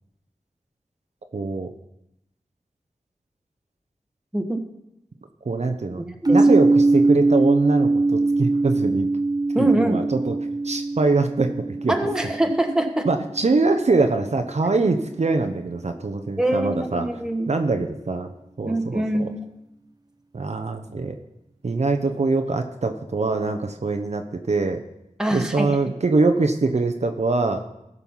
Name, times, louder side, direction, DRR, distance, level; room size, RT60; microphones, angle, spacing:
voice 1, 1.3-1.7 5.5-9.1 9.6-10.3 10.6-11.5 11.8-11.9 13.1-17.0 17.5-18.3 18.6-19.0 20.3-21.2 21.6-24.8 25.3-27.6, right 3 dB, 60° right, 6 dB, 0.8 m, -23 dB
voice 2, 6.0-6.4 9.5-10.0 11.9-13.1 16.4-17.5 18.6-19.4 25.2-25.8, right 1 dB, 5° right, 4 dB, 1.4 m, -24 dB
sound 1, 6.2-14.1, right 2 dB, 30° right, 0.8 m, -22 dB
14.5 x 5.6 x 5.7 m, 0.86 s
cardioid pair, 45°, 13 cm